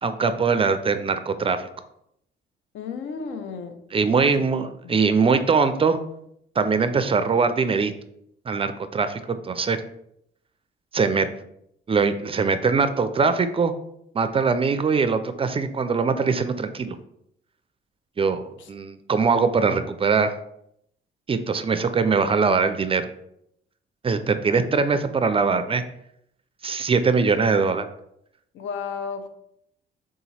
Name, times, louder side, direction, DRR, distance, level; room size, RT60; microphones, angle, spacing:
voice 1, 0.0-1.7 3.9-6.0 6.6-7.9 8.5-9.8 10.9-11.3 11.9-13.7 14.1-17.0 18.2-20.3 21.3-23.1 24.0-25.8 26.6-27.9, right 5 dB, 30° right, 10 dB, 0.3 m, -22 dB
voice 2, 2.7-3.8 4.2-4.5 4.8-5.0 18.6-18.7 28.5-29.3, left 5 dB, 75° left, 8 dB, 0.5 m, -33 dB
3.7 x 2.9 x 4.1 m, 0.75 s
cardioid pair, 90°, 20 cm